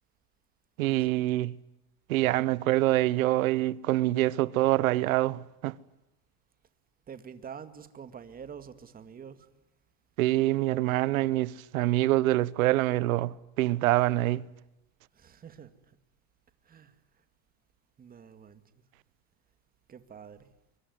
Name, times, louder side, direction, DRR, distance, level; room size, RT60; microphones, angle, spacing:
voice 1, 0.8-1.6 2.1-5.7 10.2-14.5, right 17 dB, 90° right, 1.1 m, -25 dB
voice 2, 7.1-9.4 15.2-15.7 16.7-16.9 18.0-18.6 19.9-20.4, right 7 dB, 20° right, 2.2 m, -46 dB
24.5 x 24.5 x 9.4 m
supercardioid pair, 145°, 40 cm